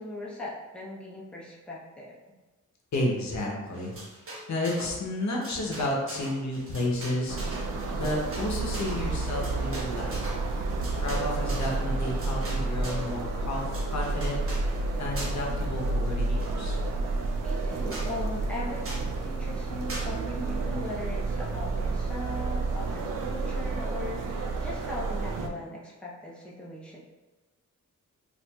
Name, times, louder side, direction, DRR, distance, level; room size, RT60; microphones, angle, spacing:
voice 1, 0.0-2.1 17.0-27.0, left 2 dB, 5° left, -5 dB, 0.6 m, -39 dB
voice 2, 2.9-3.9 4.5-10.2 10.9-16.8, left 1 dB, 60° left, -1 dB, 0.8 m, -32 dB
sound 1, 3.7-5.0 5.3-13.1 13.5-14.7 15.1-15.5 15.8-16.8 17.2-17.3 17.6-17.7 17.9-18.1 18.8-19.1 19.9-20.1, right 1 dB, 45° right, 1.0 m, -42 dB
sound 2, 7.3-25.5, right 3 dB, 80° right, 0.5 m, -30 dB
4.3 x 2.5 x 2.3 m, 1.2 s
wide cardioid pair, 130°, 31 cm